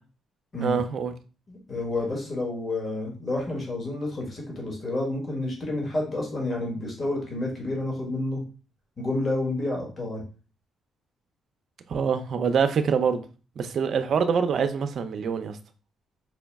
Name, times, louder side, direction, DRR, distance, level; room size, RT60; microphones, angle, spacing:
voice 1, 0.6-1.1 11.9-13.2 13.6-15.6, right 6 dB, 60° right, 0.4 m, -25 dB
voice 2, 1.5-8.4 9.0-10.2, left 2 dB, 35° left, 1.4 m, -29 dB
4.6 x 2.1 x 3.4 m
cardioid pair, 90°, 0 cm